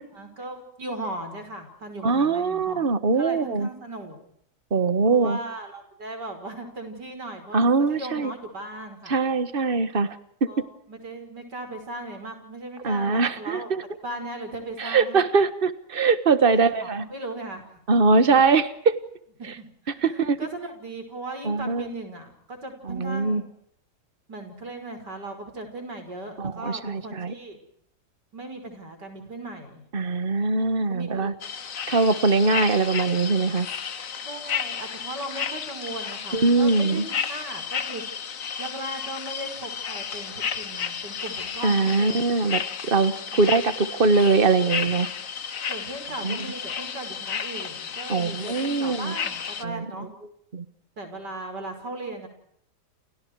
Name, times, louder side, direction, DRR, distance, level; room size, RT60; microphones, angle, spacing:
voice 1, 0.1-2.9 3.2-4.2 5.1-9.2 10.5-13.7 14.0-15.2 16.5-17.8 18.2-18.4 19.4-23.5 24.3-27.6 28.3-29.8 30.9-31.3 34.3-38.0 38.6-42.2 43.3-43.5 45.7-50.1 51.0-52.3, right 2 dB, 90° right, 6 dB, 6.4 m, -37 dB
voice 2, 2.0-3.7 4.7-5.4 7.5-8.3 9.1-10.2 12.8-13.8 14.8-17.0 17.9-19.0 20.0-20.4 21.4-21.9 22.9-23.4 26.4-27.3 29.9-31.3 31.9-33.7 36.3-37.0 41.6-42.6 42.9-45.1 46.2-46.4 48.1-49.1 49.6-50.1 50.5-50.6, right 4 dB, 35° right, 12 dB, 1.6 m, -22 dB
sound 1, 31.4-49.6, left 7 dB, 55° left, 1.5 m, -33 dB
29.5 x 29.0 x 4.8 m, 0.68 s
omnidirectional pair, 1.8 m